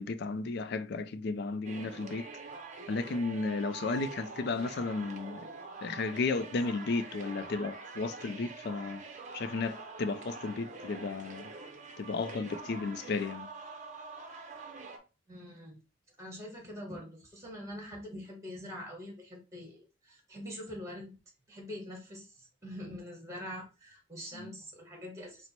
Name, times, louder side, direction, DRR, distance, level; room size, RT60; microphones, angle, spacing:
voice 1, 0.0-2.3 2.9-5.5 5.8-9.0 9.3-11.5 12.0-13.5 24.3-24.5, left 3 dB, 55° left, 0.4 m, -34 dB
sound 1, 1.6-15.0, right 4 dB, 35° right, 0.6 m, -45 dB
voice 2, 15.3-15.8 16.2-21.1 21.5-25.5, left 1 dB, 15° right, 1.2 m, -44 dB
4.4 x 2.0 x 4.2 m
head